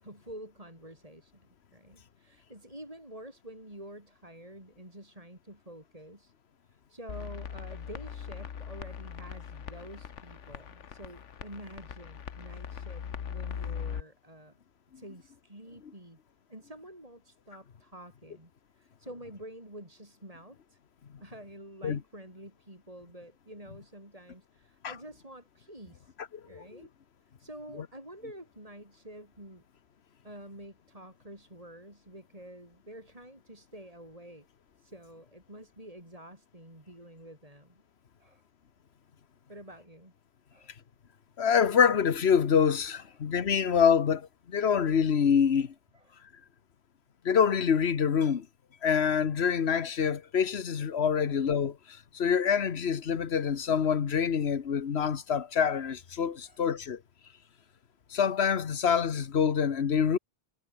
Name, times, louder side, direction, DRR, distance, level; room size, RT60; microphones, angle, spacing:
voice 1, 0.0-6.3 6.7-14.6 15.0-16.2 16.5-18.5 18.8-20.8 21.2-26.1 26.5-26.9 27.4-29.6 30.2-34.5 34.8-37.8 38.2-38.4 39.5-40.1 40.5-40.7 45.2-45.3 45.6-45.7 45.9-46.1 50.7-50.8 51.2-51.3 56.4-56.7, right 1 dB, 30° right, 7.0 m, -48 dB
sound 1, 7.1-14.0, left 8 dB, 85° left, 1.5 m, -40 dB
voice 2, 26.3-26.6 41.4-45.7 47.2-48.5 48.8-57.0 58.1-60.2, left 7 dB, 65° left, 1.4 m, -26 dB
omnidirectional pair, 1.2 m